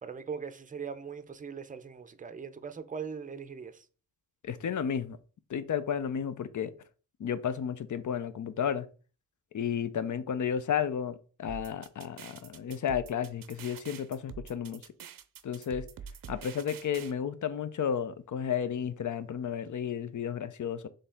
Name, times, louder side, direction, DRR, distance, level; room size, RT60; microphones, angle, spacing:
voice 1, 0.0-3.8, right 6 dB, 25° right, 0.5 m, -40 dB
voice 2, 4.4-5.2 5.5-6.7 7.2-8.9 9.5-14.8 15.4-15.9 16.3-20.9, left 8 dB, 60° left, 0.6 m, -32 dB
sound 1, 11.5-17.1, right 7 dB, 80° right, 0.5 m, -46 dB
4.2 x 3.3 x 3.5 m
cardioid pair, 60°, 33 cm